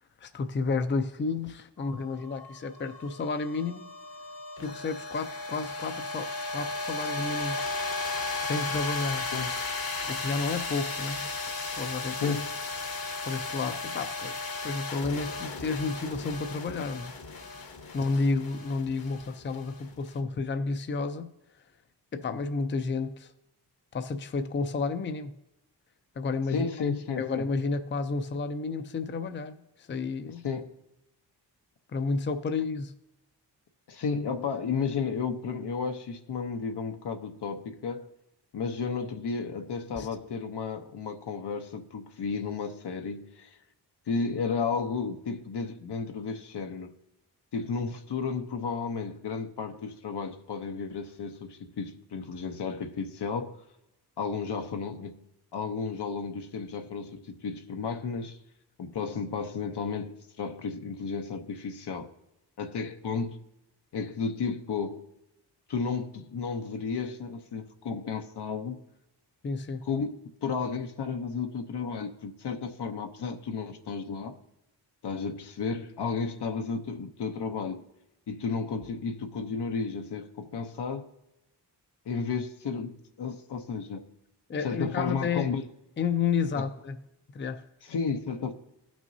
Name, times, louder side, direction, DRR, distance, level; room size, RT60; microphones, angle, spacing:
voice 1, 0.2-3.9 4.6-7.7 8.4-9.3 10.1-12.3 13.3-17.1 17.9-21.3 22.1-23.3 23.9-25.4 26.2-26.7 27.2-30.4 31.9-32.9 40.0-40.1 69.4-69.8 84.5-85.5 86.0-87.0 87.3-87.6, left 4 dB, 30° left, 0.5 m, -31 dB
sound 1, 1.8-20.1, left 3 dB, 60° left, 1.2 m, -35 dB
voice 2, 12.1-12.5 26.5-27.5 30.3-30.7 33.9-38.1 38.5-43.6 44.1-46.9 47.5-53.6 54.2-55.2 55.5-58.4 58.8-62.1 62.6-63.4 63.9-65.0 65.7-68.8 69.8-74.4 75.0-77.8 78.3-81.1 82.1-82.9 83.2-84.0 84.6-85.7 86.5-86.7 87.8-88.5, left 5 dB, 75° left, 0.9 m, -33 dB
17.0 x 6.1 x 2.7 m
wide cardioid pair, 120°, 41 cm